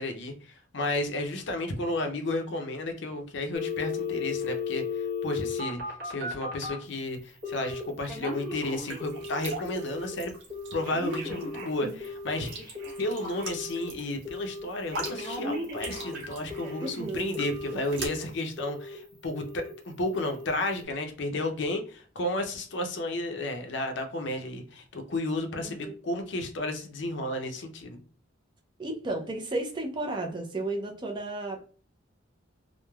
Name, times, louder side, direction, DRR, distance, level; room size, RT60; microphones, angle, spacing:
voice 1, 0.0-10.3 10.7-28.0, left 2 dB, 65° left, 0.5 m, -32 dB
Telephone, 3.5-6.8 7.4-7.8 8.1-9.4 9.7-10.1 10.5-13.9 14.2-14.6 14.9-17.0 17.3-18.2 18.6-19.0 19.3-19.7 20.1-20.5 20.8-20.9, left 3 dB, 50° right, 0.9 m, -35 dB
sound 1, 8.5-18.1, right 2 dB, 80° right, 0.8 m, -42 dB
voice 2, 16.8-17.3 25.6-25.9 28.8-31.7, right 2 dB, 25° right, 0.4 m, -33 dB
3.0 x 2.1 x 2.2 m
head